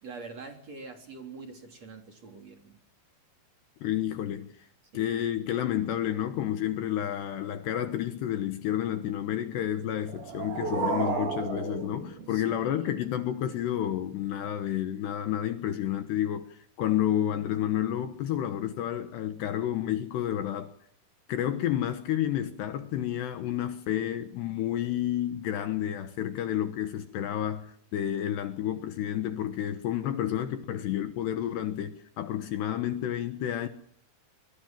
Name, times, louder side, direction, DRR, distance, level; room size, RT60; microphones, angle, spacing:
voice 1, 0.0-2.8 4.9-5.1 12.3-13.0, right 4 dB, 35° right, 4.0 m, -45 dB
voice 2, 3.8-4.7 4.9-20.7 21.3-33.7, left 11 dB, 70° left, 3.1 m, -30 dB
sound 1, 10.0-13.0, right 5 dB, 65° right, 6.6 m, -33 dB
26.0 x 24.5 x 7.6 m
omnidirectional pair, 5.7 m